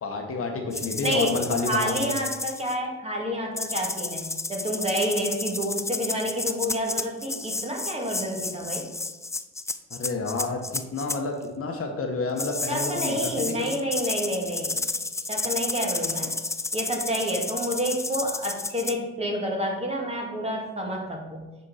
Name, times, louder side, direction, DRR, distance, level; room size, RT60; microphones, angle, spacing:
voice 1, 0.0-2.1 9.9-10.6 10.9-13.7, left 3 dB, 50° left, 3 dB, 1.3 m, -29 dB
sound 1, 0.7-2.7 3.6-11.2 12.4-18.9, left 3 dB, 10° left, 0.4 m, -32 dB
voice 2, 1.0-1.4 1.7-8.8 12.7-14.9 15.3-16.3 16.7-21.5, equal, 20° right, 0 dB, 2.1 m, -29 dB
8.3 x 4.5 x 5.6 m, 1.1 s
cardioid pair, 90°, 30 cm